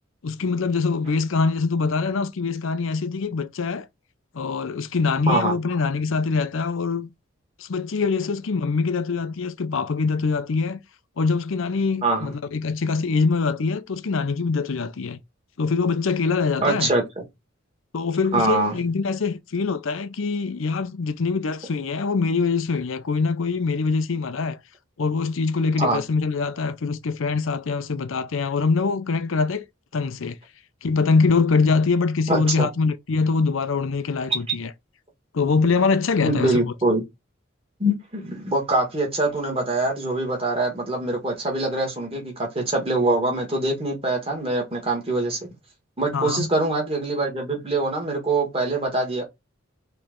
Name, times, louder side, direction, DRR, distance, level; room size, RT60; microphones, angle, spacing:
voice 1, 0.2-3.9 4.3-7.1 7.6-10.8 11.2-15.2 15.6-16.9 17.9-24.6 25.0-29.6 29.9-30.4 30.8-34.7 35.3-36.7 46.1-46.5, left 4 dB, 75° left, 0.5 m, -23 dB
voice 2, 12.0-12.3 16.6-17.2 18.3-18.8 25.8-26.0 32.3-32.7 36.2-37.0 37.8-45.5 46.0-49.2, right 2 dB, 30° right, 1.8 m, -24 dB
4.3 x 3.2 x 3.8 m
head